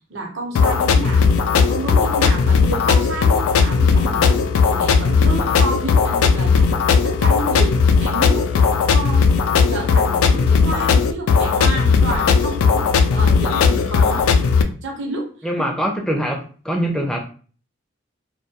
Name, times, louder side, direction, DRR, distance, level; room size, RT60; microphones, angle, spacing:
voice 1, 0.1-4.4 4.6-6.7 7.0-9.3 9.7-14.3 14.8-15.3, right 2 dB, 65° right, 1 dB, 0.7 m, -30 dB
sound 1, 0.6-14.6, left 5 dB, 90° left, 0.3 m, -16 dB
voice 2, 15.4-17.2, equal, 5° left, 1 dB, 0.4 m, -23 dB
2.2 x 2.2 x 2.7 m, 0.40 s
head